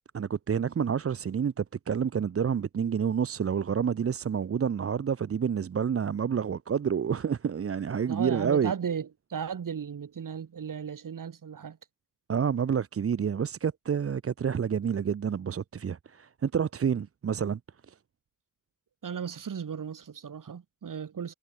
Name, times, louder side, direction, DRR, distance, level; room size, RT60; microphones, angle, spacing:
voice 1, 0.1-8.7 12.3-17.6 17.9-18.0, right 7 dB, 40° right, 0.8 m, -28 dB
voice 2, 8.1-11.8 19.0-21.3, right 7 dB, 60° right, 6.1 m, -35 dB
cardioid pair, 65°, 36 cm